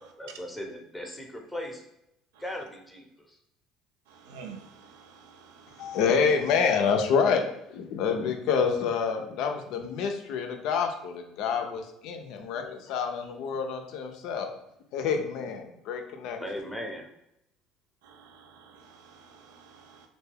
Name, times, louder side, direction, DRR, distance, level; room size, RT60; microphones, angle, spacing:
voice 1, 0.0-1.8 2.4-3.4 16.4-17.1, left 1 dB, 5° left, 0 dB, 0.7 m, -38 dB
voice 2, 4.3-5.4 5.7-6.0 18.1-18.2 18.6-18.7 19.1-20.0, right 6 dB, 85° right, 4 dB, 0.4 m, -48 dB
voice 3, 5.8-14.5 14.9-16.4, left 6 dB, 70° left, 5 dB, 0.4 m, -27 dB
2.6 x 2.2 x 3.3 m, 0.81 s
supercardioid pair, 85°, 0 cm